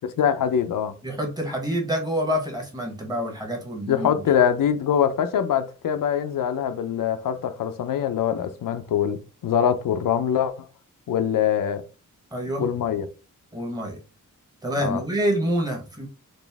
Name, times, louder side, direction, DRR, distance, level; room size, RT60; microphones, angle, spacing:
voice 1, 0.2-0.9 3.9-10.7 11.1-11.8 12.6-13.1 14.8-15.0, left 8 dB, 90° left, 0.6 m, -23 dB
voice 2, 1.0-4.1 12.3-12.7 13.5-14.0 14.6-16.1, equal, 10° right, 1.1 m, -27 dB
4.1 x 2.5 x 3.4 m
wide cardioid pair, 165°, 32 cm